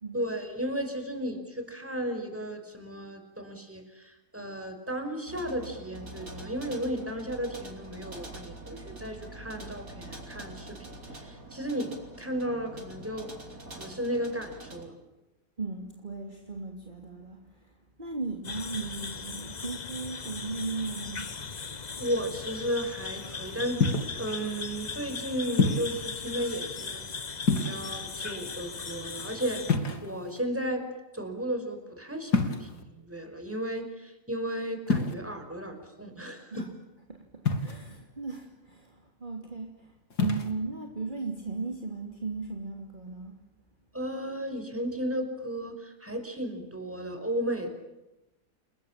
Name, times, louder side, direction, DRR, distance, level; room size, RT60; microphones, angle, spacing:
voice 1, 0.1-11.9 12.2-13.3 13.7-14.9 22.0-30.8 31.1-36.7 43.9-47.7, equal, 10° right, 4 dB, 5.4 m, -34 dB
sound 1, 5.3-14.8, right 2 dB, 60° right, 4.5 m, -45 dB
voice 2, 15.6-17.6 18.0-21.3 36.5-36.7 37.1-39.9 40.2-43.3, right 4 dB, 30° right, 2 dB, 3.0 m, -37 dB
sound 2, 18.4-29.8, left 5 dB, 30° left, 1.0 m, -38 dB
sound 3, 23.8-24.2 25.6-26.0 27.4-28.1 29.7-30.4 32.3-32.8 34.9-35.1 37.5-38.0 40.1-40.5, left 3 dB, 85° left, 3.4 m, -27 dB
30.0 x 20.5 x 8.9 m, 0.98 s
omnidirectional pair, 1.7 m